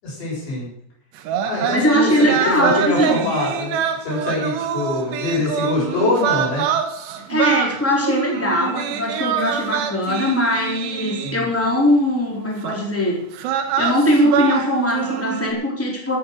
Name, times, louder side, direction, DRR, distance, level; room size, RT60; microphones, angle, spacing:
voice 1, 0.0-0.7 1.4-6.7 11.2-11.5, left 2 dB, 80° left, -5 dB, 9.1 m, -24 dB
sound 1, 1.2-11.6 12.6-12.8 13.3-15.5, right 9 dB, 80° right, 3.4 m, -25 dB
voice 2, 1.7-3.3 7.3-13.2 13.8-16.2, left 1 dB, 5° left, -1 dB, 3.5 m, -20 dB
16.5 x 9.3 x 6.7 m, 0.71 s
omnidirectional pair, 4.9 m